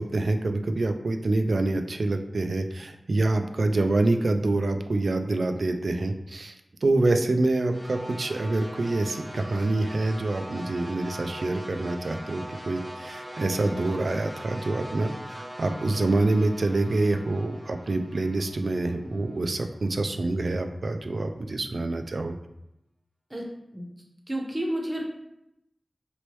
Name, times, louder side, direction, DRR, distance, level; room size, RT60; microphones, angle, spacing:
voice 1, 0.0-6.5 6.8-22.4, right 2 dB, 75° right, 6 dB, 0.3 m, -26 dB
sound 1, 7.7-19.9, equal, 10° left, 1.1 m, -42 dB
voice 2, 24.3-25.0, right 1 dB, 25° right, 0 dB, 0.7 m, -30 dB
3.0 x 3.0 x 3.1 m, 0.84 s
wide cardioid pair, 70°, 0 cm